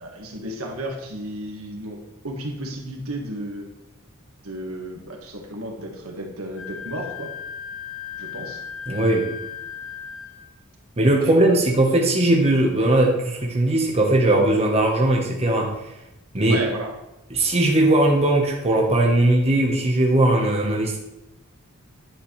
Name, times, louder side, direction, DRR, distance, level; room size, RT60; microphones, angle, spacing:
voice 1, 0.0-3.7 4.4-7.3 8.2-8.6 11.1-11.6 16.5-16.9, right 1 dB, 80° right, 2 dB, 1.8 m, -33 dB
Wind instrument woodwind instrument, 6.5-10.4, left 8 dB, 60° left, 2.0 m, -36 dB
voice 2, 8.9-9.3 11.0-15.7 16.3-16.6 17.3-21.0, right 1 dB, 30° right, 0 dB, 1.2 m, -19 dB
10.5 x 7.9 x 3.3 m, 0.92 s
head